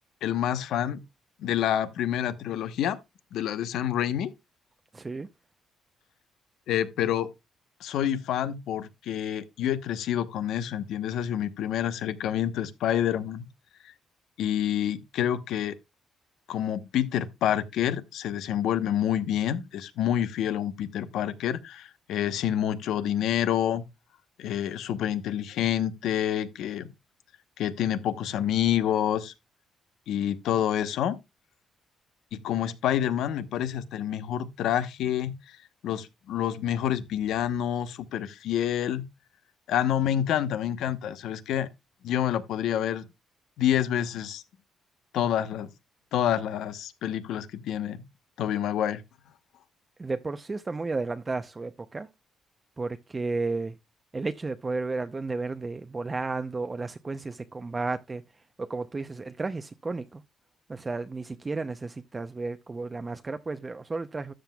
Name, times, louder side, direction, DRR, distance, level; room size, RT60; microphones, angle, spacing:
voice 1, 0.2-1.0 1.4-3.0 3.3-4.3 6.7-7.3 7.8-13.5 14.4-15.8 16.5-23.8 24.4-26.9 27.6-29.3 30.1-31.2 32.3-35.4 35.8-39.1 39.7-41.7 42.0-43.1 43.6-44.4 45.1-45.7 46.1-48.0 48.4-49.0, left 10 dB, 80° left, 0.9 m, -28 dB
voice 2, 4.9-5.3 50.0-52.1 52.8-53.8 54.1-58.2 58.6-60.2 60.7-64.3, right 3 dB, 25° right, 0.6 m, -33 dB
13.0 x 7.6 x 2.3 m
cardioid pair, 90°, 0 cm